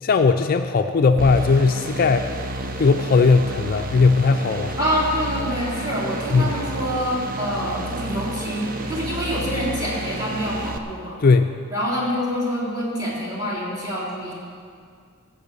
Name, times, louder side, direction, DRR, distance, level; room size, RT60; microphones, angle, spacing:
voice 1, 0.0-2.3 2.8-4.8 6.3-6.6 11.2-11.5, left 4 dB, 40° left, 7 dB, 0.4 m, -18 dB
sound 1, 1.2-10.8, right 1 dB, 40° right, 0.7 m, -31 dB
voice 2, 4.8-11.2 11.7-14.3, equal, 15° right, -5 dB, 3.4 m, -26 dB
15.0 x 7.2 x 6.7 m, 2.2 s
head